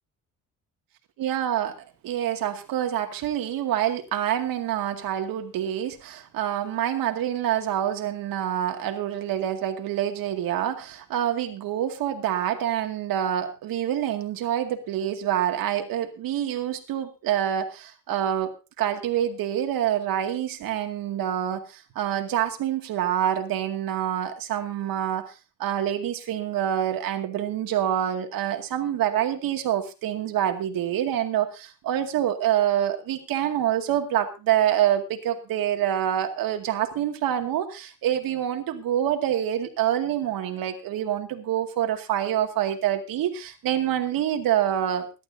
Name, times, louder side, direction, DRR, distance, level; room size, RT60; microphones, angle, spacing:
voice 1, 1.2-1.7 2.0-18.5 18.8-25.3 25.6-45.1, right 11 dB, 75° right, 5 dB, 2.3 m, -26 dB
22.0 x 12.0 x 2.7 m, 0.29 s
cardioid pair, 155°, 35 cm